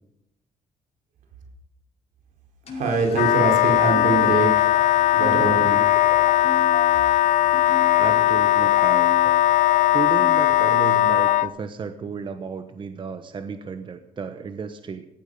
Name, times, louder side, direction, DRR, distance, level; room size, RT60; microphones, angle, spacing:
sound 1, 2.6-11.5, left 5 dB, 55° left, 5.4 m, -37 dB
voice 1, 2.7-4.7 5.1-5.9, right 4 dB, 85° right, 2 dB, 4.2 m, -24 dB
Wind instrument woodwind instrument, 3.1-11.5, left 14 dB, 75° left, 0.5 m, -19 dB
voice 2, 7.9-9.2 9.9-15.1, right 5 dB, 40° right, 9 dB, 1.1 m, -33 dB
17.5 x 14.5 x 5.5 m, 0.83 s
cardioid pair, 115°, 13 cm